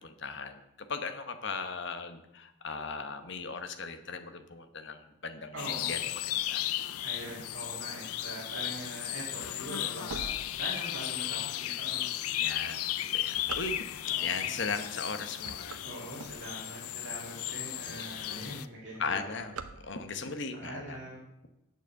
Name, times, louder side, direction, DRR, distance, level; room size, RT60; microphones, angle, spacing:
voice 1, 0.0-6.6 12.4-13.8 14.2-15.8 17.9-18.0 18.3-18.6 19.0-21.0, left 4 dB, 55° left, 8 dB, 1.0 m, -38 dB
voice 2, 5.5-5.9 7.0-12.1 14.0-14.5 15.8-19.4 20.5-21.2, right 1 dB, 55° right, -5 dB, 2.3 m, -43 dB
sound 1, 5.6-18.7, left 13 dB, 85° left, 0.5 m, -35 dB
sound 2, 9.3-11.2 11.7-11.8 12.5-14.2 14.8-15.1 15.3-16.9 17.4-17.5 17.7-17.8 18.1-18.5 18.7-20.3, right 4 dB, 80° right, 0.8 m, -44 dB
8.1 x 6.9 x 7.6 m, 0.87 s
head